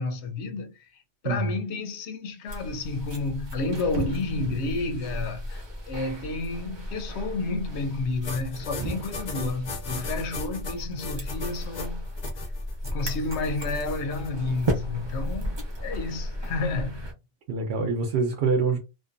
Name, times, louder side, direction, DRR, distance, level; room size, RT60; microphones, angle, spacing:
voice 1, 0.0-12.1 12.8-17.1, left 3 dB, 90° left, 0.9 m, -31 dB
voice 2, 1.2-1.6 17.5-18.8, right 4 dB, 75° right, 0.8 m, -25 dB
sound 1, 2.5-17.1, equal, 30° right, 0.6 m, -34 dB
sound 2, 8.2-14.3, left 4 dB, 50° left, 0.6 m, -38 dB
2.5 x 2.2 x 2.5 m
omnidirectional pair, 1.1 m